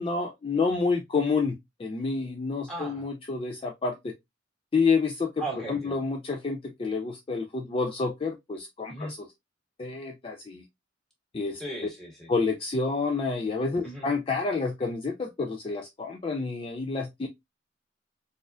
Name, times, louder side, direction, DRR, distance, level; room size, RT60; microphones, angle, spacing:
voice 1, 0.0-4.1 4.7-5.3 5.7-9.3 9.8-10.6 11.3-11.6 12.3-17.3, left 4 dB, 30° left, 0.4 m, -29 dB
voice 2, 2.7-3.0 5.4-6.0 8.9-9.1 11.6-12.3 13.8-14.1, right 2 dB, ahead, 1.6 m, -37 dB
4.1 x 2.5 x 2.4 m
head